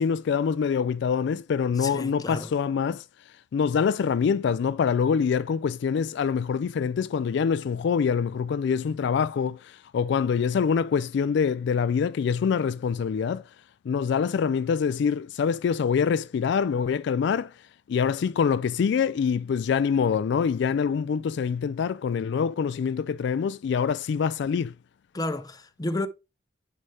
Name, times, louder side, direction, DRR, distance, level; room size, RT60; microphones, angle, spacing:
voice 1, 0.0-3.0 3.5-13.4 13.9-17.5 17.9-24.7, left 6 dB, 65° left, 0.3 m, -25 dB
voice 2, 1.8-2.5 25.1-26.1, left 2 dB, 20° left, 0.7 m, -31 dB
9.8 x 5.6 x 3.3 m
head